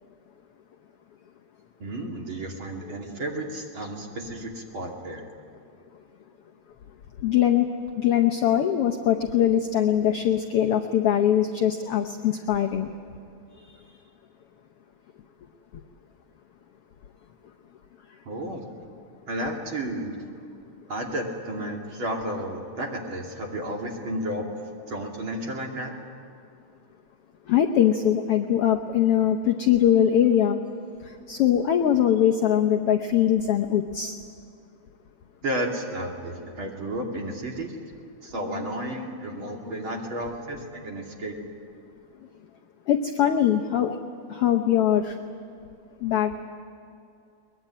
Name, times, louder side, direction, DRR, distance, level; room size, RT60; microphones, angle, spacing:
voice 1, 1.8-5.2 18.2-18.7 19.3-20.1 20.9-24.5 24.9-25.9 35.4-37.8 38.2-41.3, right 1 dB, 40° right, 1 dB, 3.1 m, -32 dB
voice 2, 7.2-7.7 8.0-12.9 27.5-30.6 31.3-34.1 42.9-44.0 44.3-45.1 46.0-46.3, left 10 dB, 70° left, 4 dB, 1.4 m, -22 dB
22.0 x 20.5 x 9.9 m, 2.6 s
omnidirectional pair, 3.6 m